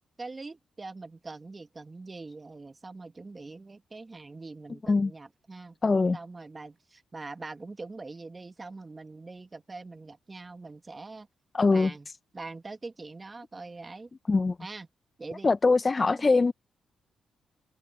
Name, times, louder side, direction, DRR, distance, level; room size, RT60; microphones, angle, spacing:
voice 1, 0.2-5.8 6.1-11.3 11.7-12.1 12.3-14.1 14.6-14.9 15.2-15.5 16.1-16.3, right 3 dB, 30° right, 1.9 m, -43 dB
voice 2, 5.8-6.2 11.5-11.9 14.3-14.6 15.4-16.5, left 3 dB, 35° left, 0.9 m, -22 dB
open air
hypercardioid pair, 45°, 0 cm